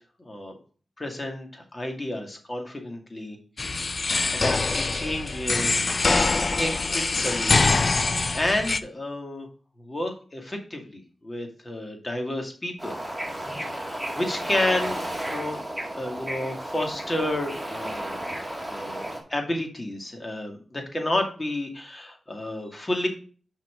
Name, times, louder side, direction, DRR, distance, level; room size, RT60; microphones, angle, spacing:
voice 1, 0.2-0.5 1.0-3.4 4.3-6.2 6.5-9.5 9.8-13.0 13.6-15.6 15.9-18.2 18.7-19.0 19.3-23.1, left 1 dB, 25° left, 3 dB, 2.2 m, -31 dB
sound 1, 3.6-8.8, left 3 dB, 45° left, 0.5 m, -24 dB
Bird / Ocean, 12.8-19.2, right 1 dB, 5° right, 2.0 m, -33 dB
5.9 x 5.9 x 4.8 m, 0.39 s
cardioid pair, 75°, 0 cm